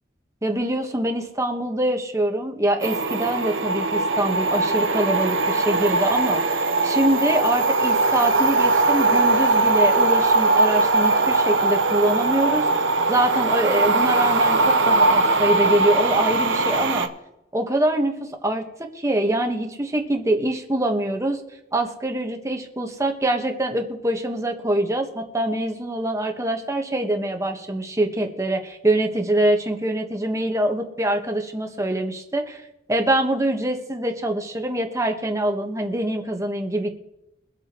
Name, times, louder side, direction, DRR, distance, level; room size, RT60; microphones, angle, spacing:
voice 1, 0.4-12.6 13.1-17.1 17.5-18.6 18.9-21.4 21.7-32.6 32.9-36.9, right 1 dB, 15° right, 4 dB, 1.2 m, -24 dB
sound 1, 2.8-17.1, right 3 dB, 85° right, 0.9 m, -20 dB
23.5 x 8.1 x 3.0 m, 0.91 s
head